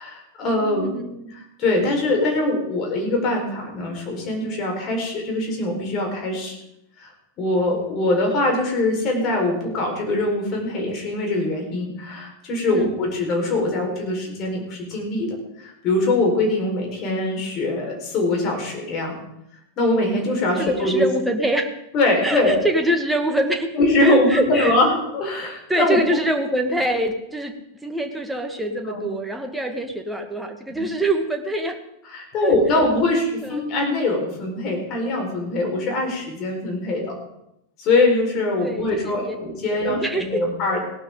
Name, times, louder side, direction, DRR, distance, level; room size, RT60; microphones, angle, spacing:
voice 1, 0.0-0.9 1.6-6.6 7.0-7.1 7.4-19.2 19.8-21.1 21.9-22.5 23.7-26.0 28.9-29.0 30.7-30.8 32.1-37.1 37.8-40.8, left 2 dB, 35° left, 1 dB, 4.5 m, -22 dB
voice 2, 0.6-1.3 12.7-12.9 20.6-21.7 22.2-24.7 25.7-27.5 27.8-31.8 32.4-32.9 33.4-33.6 38.6-39.4 39.8-40.4, right 1 dB, 5° right, 4 dB, 1.6 m, -25 dB
18.0 x 12.0 x 3.8 m, 0.82 s
figure-of-eight pair, 90°, 0 cm